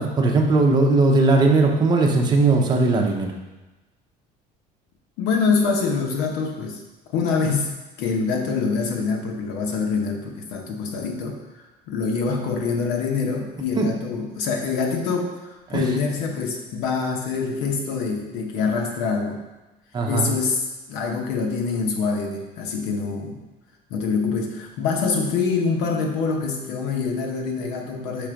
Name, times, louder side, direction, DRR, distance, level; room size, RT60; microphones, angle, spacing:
voice 1, 0.0-3.3 13.8-13.9 15.7-15.9 19.9-20.3, right 3 dB, 25° right, 1 dB, 0.9 m, -18 dB
voice 2, 5.2-6.8 7.1-11.4 11.9-19.4 20.1-23.4 23.9-28.3, left 5 dB, 80° left, 2 dB, 1.2 m, -25 dB
5.4 x 4.3 x 5.1 m, 1.1 s
cardioid pair, 140°, 17 cm